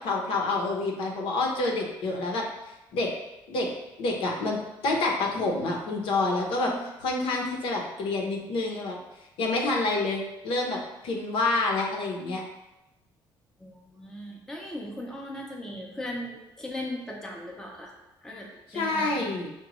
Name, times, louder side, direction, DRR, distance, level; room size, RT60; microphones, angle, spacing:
voice 1, 0.0-2.4 2.9-3.1 3.5-3.7 4.0-6.7 7.0-9.0 9.4-12.4 18.7-19.5, left 2 dB, 75° left, 0 dB, 0.8 m, -28 dB
voice 2, 13.6-17.9 18.2-19.4, left 1 dB, 5° left, -1 dB, 0.5 m, -38 dB
5.8 x 2.2 x 3.0 m, 0.97 s
cardioid pair, 160°, 9 cm